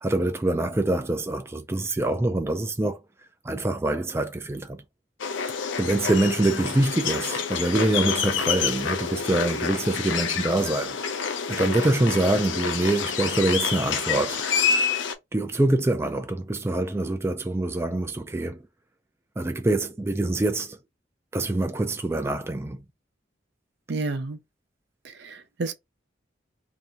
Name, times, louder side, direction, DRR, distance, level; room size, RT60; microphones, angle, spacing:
voice 1, 0.0-3.0 3.4-4.8 5.8-11.0 11.5-14.4 15.3-18.6 19.4-20.8 21.3-22.8, right 2 dB, 15° right, 0.3 m, -25 dB
sound 1, 5.2-15.1, left 6 dB, 90° left, 0.6 m, -28 dB
voice 2, 23.9-24.4 25.0-25.7, right 3 dB, 65° right, 0.5 m, -30 dB
2.7 x 2.7 x 3.4 m
head